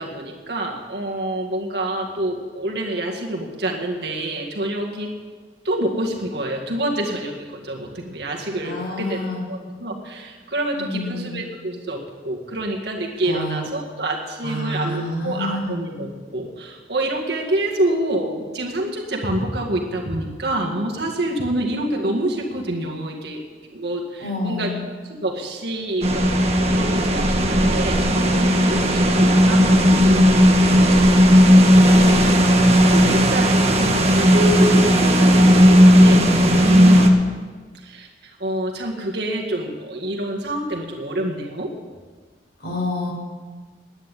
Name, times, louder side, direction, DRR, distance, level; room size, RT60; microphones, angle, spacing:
voice 1, 0.0-5.1 5.6-9.2 9.5-23.4 23.7-24.7 25.0-26.3 26.6-36.3 36.6-37.1 37.7-41.8, right 1 dB, 65° right, 0 dB, 2.0 m, -27 dB
voice 2, 8.6-9.4 10.7-11.4 13.2-13.7 14.4-15.8 24.2-24.8 31.7-32.3 42.6-43.1, left 1 dB, 65° left, -2 dB, 4.7 m, -28 dB
sound 1, 26.0-37.1, equal, 35° right, 1.3 m, -15 dB
10.0 x 9.7 x 9.8 m, 1.4 s
head